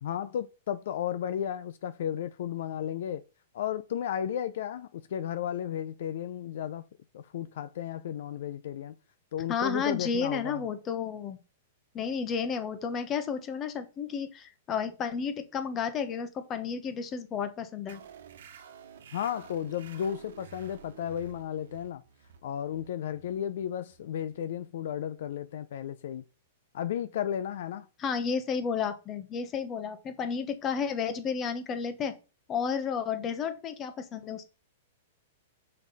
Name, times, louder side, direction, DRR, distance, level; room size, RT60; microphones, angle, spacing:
voice 1, 0.0-3.2 3.5-6.8 7.1-8.9 9.3-10.6 19.1-22.0 22.4-26.2 26.7-27.9, left 10 dB, 70° left, 0.5 m, -34 dB
voice 2, 9.5-11.4 11.9-18.0 28.0-32.1 32.5-34.5, left 6 dB, 25° left, 1.1 m, -32 dB
sound 1, 17.9-25.0, right 7 dB, 80° right, 1.1 m, -51 dB
6.2 x 5.4 x 4.1 m
hypercardioid pair, 150°, 0 cm